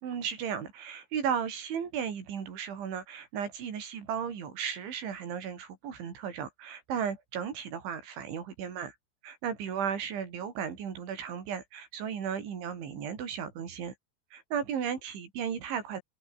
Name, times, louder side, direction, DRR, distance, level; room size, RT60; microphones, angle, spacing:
voice 1, 0.0-9.0 9.2-13.9 14.3-16.0, right 7 dB, 75° right, 6.4 m, -35 dB
open air
omnidirectional pair, 5.4 m